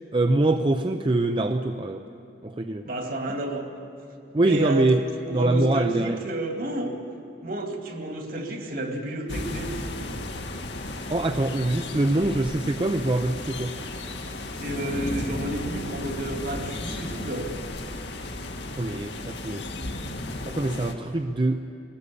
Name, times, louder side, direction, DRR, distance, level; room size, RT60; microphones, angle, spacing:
voice 1, 0.1-2.1 2.4-2.9 4.3-5.0 5.3-6.2 11.1-13.8 18.7-19.6 20.5-21.6, right 2 dB, 30° right, 6 dB, 0.6 m, -24 dB
voice 2, 2.8-3.7 4.4-4.9 5.2-6.9 7.4-9.9 14.6-17.5, right 1 dB, 55° right, 4 dB, 2.4 m, -31 dB
sound 1, 9.3-20.9, left 1 dB, 80° left, 1.9 m, -34 dB
21.0 x 18.5 x 8.4 m, 2.7 s
head